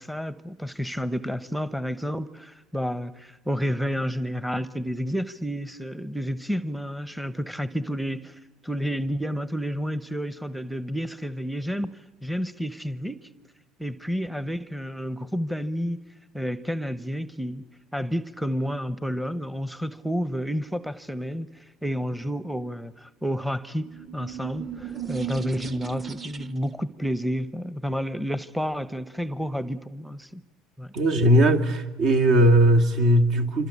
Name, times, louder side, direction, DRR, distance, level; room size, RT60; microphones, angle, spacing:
voice 1, 0.0-8.3 8.6-13.3 13.8-16.0 16.3-17.6 17.9-30.4 30.8-30.9, equal, ahead, 0.9 m, -30 dB
sound 1, 23.8-26.8, right 9 dB, 30° right, 1.3 m, -36 dB
voice 2, 30.9-33.7, right 1 dB, 60° right, 2.5 m, -19 dB
26.5 x 25.0 x 8.6 m
supercardioid pair, 85°, 0 cm